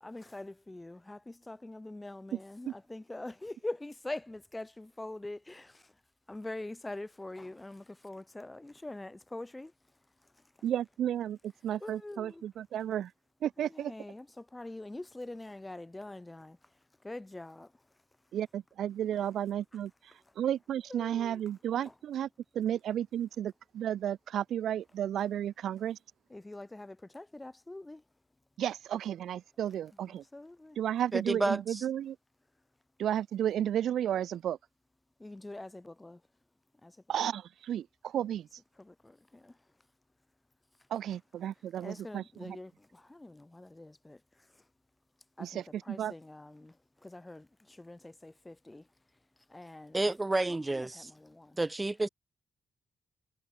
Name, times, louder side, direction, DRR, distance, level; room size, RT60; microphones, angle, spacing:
voice 1, 0.0-6.0 6.3-10.6 11.8-12.4 13.6-18.4 19.2-19.3 20.1-20.4 20.9-21.4 21.8-21.9 26.3-28.1 29.9-30.8 35.2-36.3 36.7-37.1 38.2-38.3 38.7-39.9 40.8-40.9 41.4-44.7 45.4-50.1 50.5-51.6, left 2 dB, 20° left, 1.5 m, -45 dB
voice 2, 10.6-13.1 13.4-13.9 18.3-22.3 22.5-26.0 28.6-30.2 30.8-32.2 33.0-34.6 37.1-38.5 40.9-42.6 45.4-45.6 45.9-46.1, right 10 dB, 75° right, 0.6 m, -33 dB
voice 3, 31.1-31.8 49.9-50.9 51.6-52.1, right 2 dB, 25° right, 1.1 m, -30 dB
supercardioid pair, 50°, 0 cm